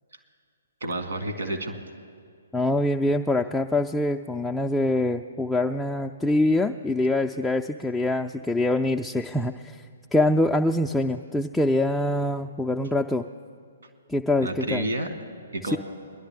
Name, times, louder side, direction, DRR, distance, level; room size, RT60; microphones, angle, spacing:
voice 1, 0.8-1.8 14.4-15.1 15.5-15.8, right 1 dB, 70° right, 7 dB, 1.7 m, -29 dB
voice 2, 2.5-9.8 10.1-13.3 14.1-14.8, left 2 dB, 5° left, 2 dB, 0.3 m, -24 dB
22.5 x 11.5 x 3.4 m, 2.2 s
figure-of-eight pair, 125°, 0 cm